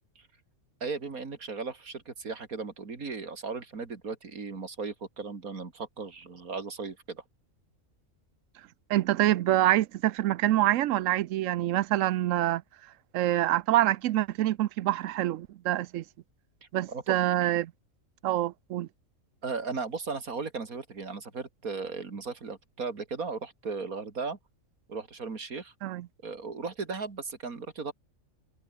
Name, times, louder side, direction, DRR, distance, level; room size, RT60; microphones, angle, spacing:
voice 1, 0.8-7.2 16.9-17.2 19.4-24.4 24.9-25.7 26.2-27.9, right 4 dB, 85° right, 3.1 m, -36 dB
voice 2, 8.9-12.6 13.1-16.0 16.7-17.7 18.2-18.9 25.8-26.1, right 14 dB, 70° right, 0.9 m, -26 dB
omnidirectional pair, 1.5 m